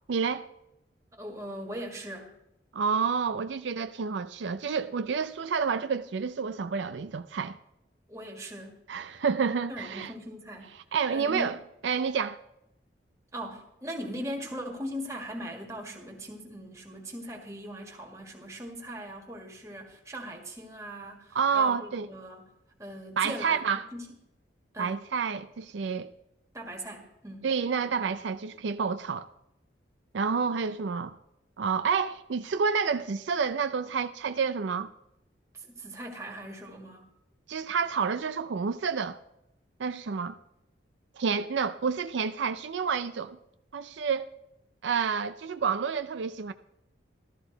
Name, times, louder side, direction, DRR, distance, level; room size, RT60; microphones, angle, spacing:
voice 1, 0.1-0.4 2.7-7.6 8.9-10.1 10.9-11.5 11.8-12.4 21.3-22.1 23.2-23.8 24.8-26.1 27.4-29.3 30.1-31.2 31.6-34.9 37.5-39.2 39.8-40.4 41.2-43.4 43.7-44.3 44.8-46.5, right 6 dB, 80° right, 0.5 m, -29 dB
voice 2, 1.1-2.4 8.1-8.8 9.7-10.7 11.1-11.6 13.3-22.4 22.8-23.6 23.9-24.1 24.7-25.0 26.5-27.5 35.5-37.1, equal, 15° right, 1.8 m, -40 dB
13.5 x 13.5 x 4.0 m
head